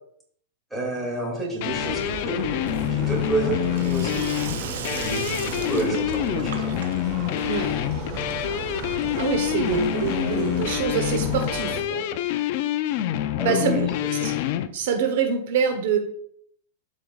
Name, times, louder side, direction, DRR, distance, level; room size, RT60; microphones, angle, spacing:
voice 1, 0.7-2.5 2.9-4.2 4.9-6.7 13.4-13.8, right 2 dB, 5° right, -4 dB, 2.6 m, -29 dB
sound 1, 1.6-14.7, left 12 dB, 45° left, 0.5 m, -27 dB
sound 2, 1.7-11.8, right 3 dB, 35° right, 1.6 m, -35 dB
Sink (filling or washing), 2.6-9.4, right 6 dB, 85° right, 1.3 m, -38 dB
voice 2, 9.2-12.0 13.4-13.9 14.2-14.3 14.7-16.0, right 6 dB, 60° right, 5 dB, 1.1 m, -25 dB
12.5 x 5.2 x 2.4 m, 0.67 s
supercardioid pair, 160°, 0 cm